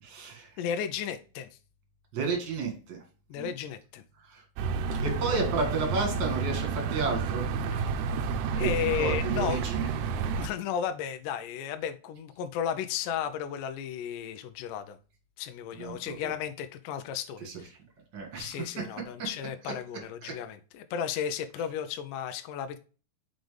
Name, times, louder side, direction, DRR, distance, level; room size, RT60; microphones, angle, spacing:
voice 1, 0.0-0.5 2.1-3.0 3.4-3.5 4.3-4.4 5.0-7.4 8.6-8.7 9.0-9.9 15.8-16.3 17.5-17.6 18.1-18.6 20.2-20.3, right 4 dB, 40° right, 2 dB, 2.0 m, -32 dB
voice 2, 0.6-1.5 3.3-4.0 5.3-5.4 7.7-7.8 8.5-9.7 10.4-15.0 15.4-17.7 18.4-22.8, left 9 dB, 75° left, 8 dB, 2.1 m, -34 dB
sound 1, 4.6-10.5, right 5 dB, 80° right, 2.0 m, -30 dB
6.1 x 5.1 x 3.3 m, 0.35 s
omnidirectional pair, 4.0 m